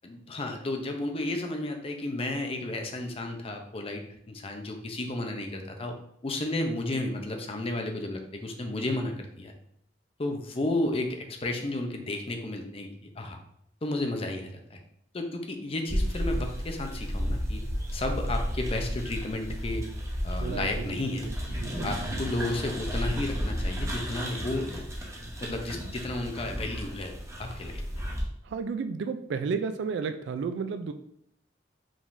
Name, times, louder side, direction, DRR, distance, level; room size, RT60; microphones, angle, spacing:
voice 1, 0.0-5.9 6.2-9.5 10.2-13.4 13.8-14.8 15.1-17.6 17.9-19.9 20.2-21.2 21.8-24.9 25.4-28.0, left 2 dB, 30° left, 4 dB, 0.6 m, -32 dB
sound 1, 15.9-28.2, equal, 15° right, 0.8 m, -33 dB
voice 2, 20.4-21.9 28.4-30.9, right 5 dB, 70° right, 9 dB, 0.3 m, -33 dB
5.0 x 3.6 x 2.6 m, 0.72 s
head